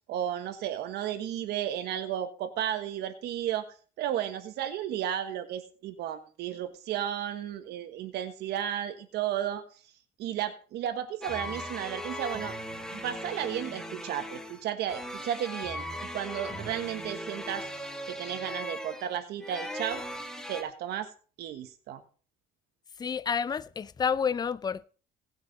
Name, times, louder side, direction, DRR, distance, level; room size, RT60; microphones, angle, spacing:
voice 1, 0.1-3.7 4.0-9.6 10.2-12.6 12.9-15.9 16.1-17.6 18.1-20.0 20.5-21.1 21.4-22.0, right 10 dB, 75° right, 1.4 m, -33 dB
sound 1, 11.2-20.6, equal, 5° left, 1.7 m, -38 dB
voice 2, 23.0-24.8, left 6 dB, 25° left, 0.5 m, -29 dB
18.0 x 6.1 x 4.1 m
cardioid pair, 110°, 17 cm